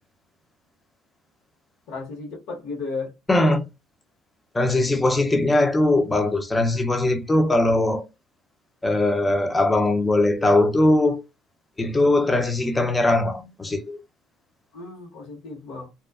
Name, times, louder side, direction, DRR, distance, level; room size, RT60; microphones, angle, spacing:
voice 1, 1.9-3.1 14.7-15.9, left 3 dB, 65° left, 1.0 m, -34 dB
voice 2, 3.3-3.6 4.5-8.0 8.8-11.2 11.8-14.0, left 2 dB, 10° left, 0.4 m, -20 dB
2.4 x 2.3 x 2.3 m
cardioid pair, 145°, 0 cm